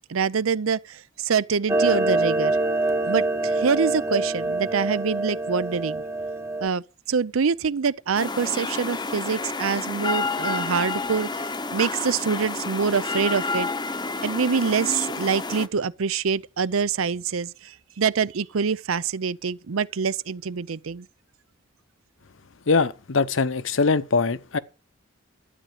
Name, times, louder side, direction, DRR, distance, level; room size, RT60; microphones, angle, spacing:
voice 1, 0.1-2.6 3.1-6.0 6.6-13.7 14.2-21.1, right 6 dB, 90° right, 0.6 m, -25 dB
Clock, 1.7-6.7, right 2 dB, 15° right, 0.8 m, -25 dB
sound 1, 8.1-15.7, left 3 dB, 20° left, 0.7 m, -29 dB
voice 2, 22.7-24.6, left 4 dB, 70° left, 0.8 m, -22 dB
12.5 x 8.9 x 6.5 m
head